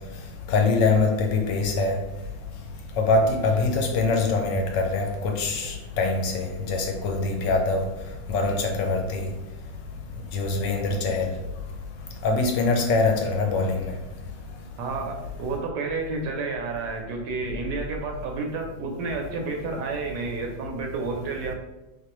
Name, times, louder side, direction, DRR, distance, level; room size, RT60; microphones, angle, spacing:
voice 1, 0.5-2.0 3.0-7.8 8.3-9.3 10.3-11.3 12.2-13.9, left 3 dB, 75° left, 1.1 m, -23 dB
voice 2, 14.8-21.5, right 3 dB, 75° right, 1.1 m, -30 dB
3.6 x 3.0 x 2.9 m
omnidirectional pair, 2.1 m